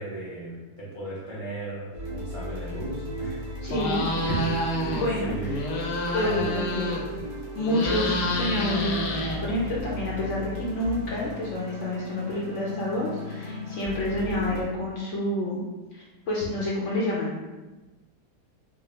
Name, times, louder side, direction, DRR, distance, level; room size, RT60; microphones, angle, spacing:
voice 1, 0.0-3.4 4.8-5.6 6.2-6.6 14.1-14.3, right 2 dB, 45° right, -8 dB, 0.4 m, -37 dB
sound 1, 1.9-14.6, left 1 dB, 60° right, 1.5 m, -36 dB
voice 2, 3.6-4.6 4.9-5.6 6.1-7.0 7.6-15.6 15.9-17.4, left 1 dB, 65° left, -5 dB, 0.7 m, -29 dB
sound 2, 3.7-5.1 5.4-7.2 7.5-9.8, left 1 dB, 85° left, 1.3 m, -29 dB
4.5 x 2.0 x 3.3 m, 1.1 s
omnidirectional pair, 1.8 m